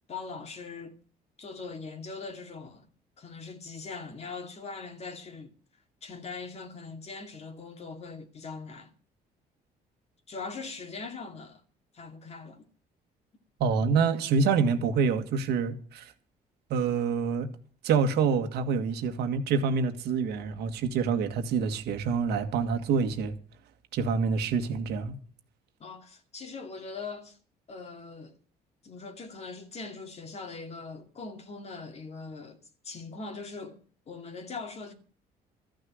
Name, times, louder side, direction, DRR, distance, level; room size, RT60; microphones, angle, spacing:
voice 1, 0.1-1.0 1.4-2.9 3.2-5.5 6.0-8.9 10.3-11.6 11.9-12.6 25.8-27.4 27.7-28.4 28.8-34.9, left 4 dB, 40° left, 2.3 m, -41 dB
voice 2, 13.6-16.1 16.7-17.5 17.8-23.4 23.9-25.1, right 5 dB, 75° right, 1.7 m, -26 dB
14.0 x 6.6 x 9.4 m
cardioid pair, 110°, 17 cm